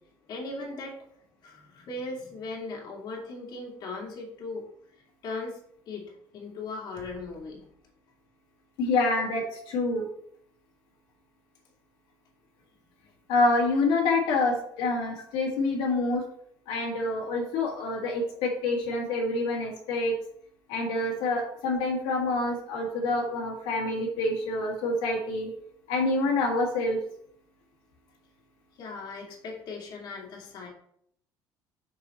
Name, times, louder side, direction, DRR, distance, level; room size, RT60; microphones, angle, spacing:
voice 1, 0.3-1.0 1.4-4.7 5.2-5.6 5.9-7.6 28.8-30.7, left 3 dB, 55° left, -2 dB, 2.4 m, -38 dB
voice 2, 8.8-10.1 13.3-16.2 16.7-20.1 20.7-25.5 25.9-27.0, left 2 dB, 85° left, -2 dB, 2.0 m, -27 dB
6.2 x 6.0 x 4.2 m, 0.68 s
cardioid pair, 140°, 9 cm